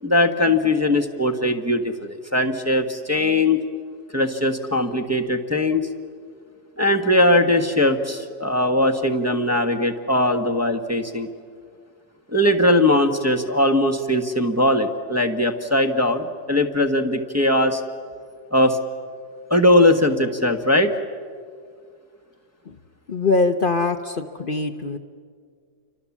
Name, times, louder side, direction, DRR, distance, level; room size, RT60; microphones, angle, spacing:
voice 1, 0.0-3.6 4.1-5.9 6.8-11.3 12.3-17.8 18.5-18.8 19.5-20.9, left 1 dB, 10° right, 2 dB, 1.3 m, -20 dB
voice 2, 23.1-25.0, left 3 dB, 45° left, 7 dB, 1.0 m, -22 dB
29.5 x 24.5 x 7.3 m, 2.1 s
omnidirectional pair, 1.3 m